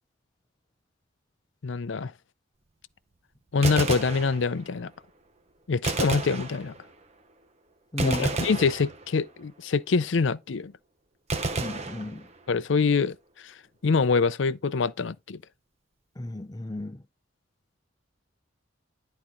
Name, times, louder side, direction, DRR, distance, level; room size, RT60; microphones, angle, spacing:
voice 1, 1.6-2.1 3.5-4.9 5.7-6.7 8.0-10.7 12.5-13.1 13.4-13.5 13.8-15.4, left 4 dB, 70° left, 0.5 m, -25 dB
Gunshot gunfire, 3.5-4.8 5.8-7.1 8.0-9.4 11.3-12.6, right 3 dB, 35° right, 1.0 m, -31 dB
voice 2, 7.9-8.4 11.6-12.3 16.2-17.0, left 1 dB, 20° left, 0.6 m, -33 dB
11.0 x 4.2 x 3.8 m
head